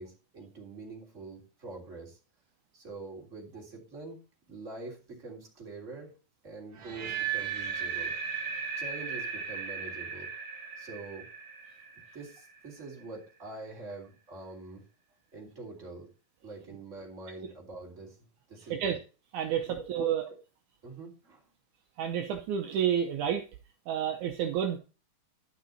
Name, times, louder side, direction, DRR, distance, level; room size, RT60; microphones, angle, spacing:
voice 1, 0.0-2.2 2.7-4.2 4.5-6.1 6.4-8.1 8.8-10.3 10.8-11.3 12.1-14.8 15.3-16.1 16.4-18.2 18.5-19.0 19.6-20.0 20.8-21.4, right 3 dB, 20° right, -2 dB, 3.4 m, -45 dB
sound 1, 6.8-12.8, right 6 dB, 50° right, 2.0 m, -36 dB
voice 2, 19.3-20.2 22.0-23.4 23.9-24.8, right 9 dB, 75° right, 4 dB, 2.2 m, -29 dB
12.0 x 6.0 x 4.1 m, 0.34 s
omnidirectional pair, 3.7 m